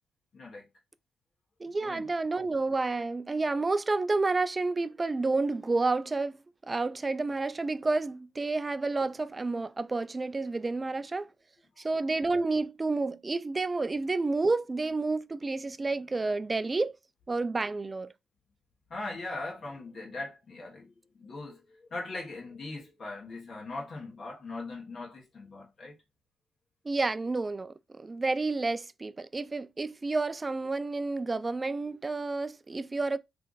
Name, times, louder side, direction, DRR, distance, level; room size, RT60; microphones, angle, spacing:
voice 1, 0.3-0.7 1.8-2.1 18.9-25.9, left 2 dB, 45° left, 1.2 m, -40 dB
voice 2, 1.6-6.4 6.7-11.3 11.8-17.0 17.3-18.1 26.8-33.2, right 3 dB, 25° right, 0.3 m, -30 dB
3.2 x 2.5 x 3.8 m
cardioid pair, 90°, 0 cm